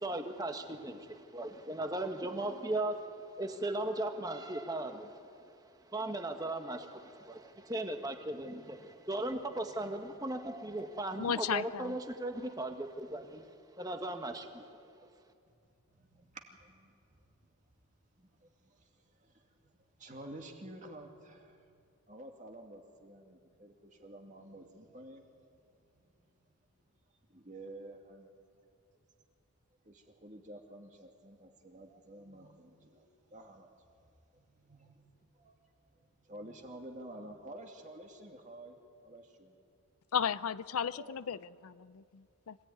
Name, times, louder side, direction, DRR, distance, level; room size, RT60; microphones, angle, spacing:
voice 1, 0.0-3.1 3.4-5.2 5.9-13.5 13.8-14.6, right 1 dB, 15° right, 6 dB, 1.4 m, -37 dB
voice 2, 11.2-11.9 40.1-42.6, left 7 dB, 85° left, 17 dB, 0.5 m, -35 dB
voice 3, 15.5-17.5 18.2-21.7 22.1-25.3 25.6-26.2 27.3-28.3 29.8-39.6 40.9-41.1, right 1 dB, 35° right, 2 dB, 2.3 m, -51 dB
25.5 x 17.0 x 9.5 m, 2.5 s
head